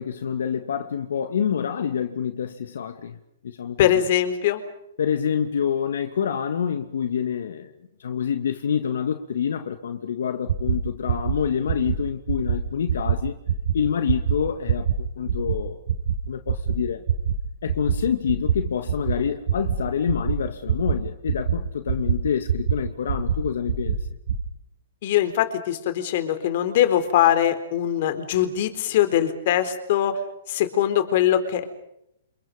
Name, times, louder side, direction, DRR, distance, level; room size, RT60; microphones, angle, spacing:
voice 1, 0.0-3.2 3.4-4.0 5.0-7.7 8.0-13.4 13.7-15.8 16.3-17.0 17.6-24.0, left 8 dB, 75° left, 2.4 m, -27 dB
voice 2, 3.8-4.6 25.0-30.2 30.5-31.6, left 11 dB, 50° left, 4.1 m, -22 dB
sound 1, 10.5-10.7 11.1-11.3 11.7-11.9 12.3-12.5 12.9-13.1 13.5-13.7 14.1-14.3 14.7-14.9 15.3-15.5 15.9-16.1 16.5-16.7 17.1-17.3 17.7-18.0 18.3-18.5 18.9-19.1 19.5-19.7 20.1-20.3 20.7-20.9 21.3-21.5 21.9-22.1 22.5-22.7 23.1-23.3 23.7-23.9 24.3-24.4, right 9 dB, 65° right, 7.4 m, -22 dB
29.5 x 28.0 x 5.4 m
hypercardioid pair, 155°, 0 cm